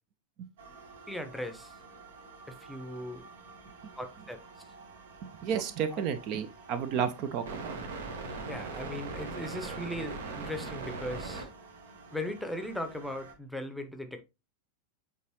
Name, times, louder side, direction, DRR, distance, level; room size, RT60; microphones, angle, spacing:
sound 1, 0.6-13.3, right 3 dB, 60° right, 1.3 m, -43 dB
voice 1, 1.1-1.8 2.5-3.3 4.0-4.4 5.5-5.6 5.9-6.0 8.4-11.5 12.1-14.3, left 1 dB, ahead, 0.9 m, -38 dB
voice 2, 5.2-7.8, right 8 dB, 40° right, 0.7 m, -32 dB
8.2 x 3.9 x 3.0 m
figure-of-eight pair, 90°, 0 cm